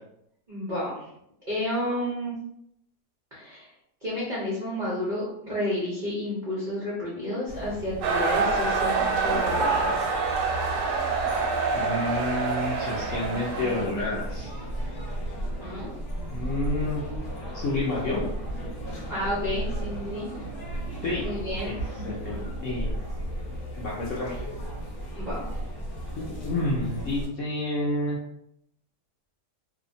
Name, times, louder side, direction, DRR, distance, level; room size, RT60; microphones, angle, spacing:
voice 1, 0.5-1.1 1.5-2.3 3.3-3.7 4.0-10.1 15.6-15.9 19.1-20.3 21.2-22.5 25.1-25.4, left 1 dB, 70° right, -7 dB, 0.4 m, -31 dB
sound 1, 7.5-27.2, right 1 dB, 40° left, 0.9 m, -35 dB
sound 2, 8.0-13.8, right 4 dB, 85° right, 1.2 m, -26 dB
voice 2, 11.7-14.5 16.3-17.0 17.5-18.3 21.0-21.3 21.6-21.7 22.0-23.1 23.8-24.4 26.2-28.2, left 2 dB, 75° left, -5 dB, 0.7 m, -29 dB
2.7 x 2.1 x 2.6 m, 0.77 s
omnidirectional pair, 1.8 m